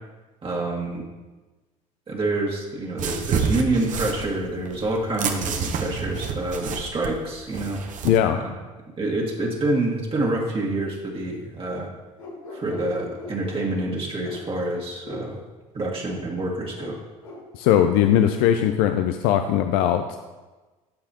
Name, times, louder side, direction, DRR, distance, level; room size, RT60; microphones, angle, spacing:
voice 1, 0.4-1.0 2.1-7.8 8.4-8.5 9.0-11.9 12.5-15.4 15.7-17.0, right 2 dB, 35° right, -2 dB, 1.8 m, -27 dB
sound 1, 3.0-8.2, right 6 dB, 50° right, 1.0 m, -29 dB
voice 2, 8.0-8.4 17.5-20.2, left 10 dB, 70° left, 7 dB, 0.5 m, -20 dB
sound 2, 12.2-13.7 14.2-14.4 15.0-15.2 16.0-16.2 16.8-16.9 17.2-17.4 18.0-18.1, left 2 dB, 85° left, 1.5 m, -39 dB
13.0 x 4.8 x 2.9 m, 1.2 s
hypercardioid pair, 60°, 17 cm